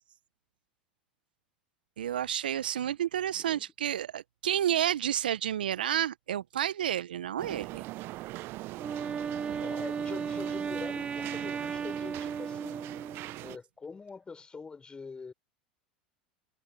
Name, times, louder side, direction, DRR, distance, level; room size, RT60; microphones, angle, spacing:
voice 1, 2.0-7.8, right 10 dB, 80° right, 1.1 m, -30 dB
voice 2, 3.3-3.6 9.6-12.9 13.4-15.3, left 4 dB, 20° left, 6.0 m, -44 dB
sound 1, 7.4-13.6, right 18 dB, 50° right, 0.8 m, -42 dB
Wind instrument woodwind instrument, 8.8-13.5, right 6 dB, 20° right, 0.4 m, -35 dB
hypercardioid pair, 85°, 5 cm